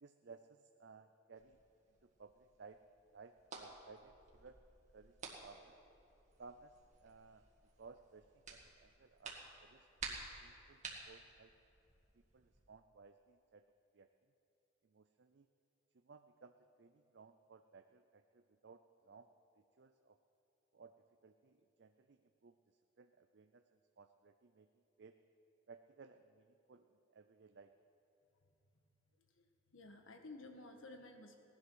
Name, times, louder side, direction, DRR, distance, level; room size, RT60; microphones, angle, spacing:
voice 1, 0.0-1.6 2.0-2.8 3.1-4.6 4.9-5.8 6.4-7.4 7.8-9.4 9.6-11.5 12.1-13.6 13.9-14.1 14.8-15.5 16.0-19.3 19.6-20.2 20.7-21.0 21.2-24.7 25.0-25.2 25.7-27.7, right 4 dB, 60° right, 7 dB, 0.5 m, -60 dB
sound 1, 1.4-12.6, right 4 dB, 40° right, 2.0 m, -54 dB
voice 2, 29.4-31.4, left 2 dB, 90° left, 5 dB, 1.5 m, -54 dB
18.0 x 11.5 x 6.2 m, 2.8 s
head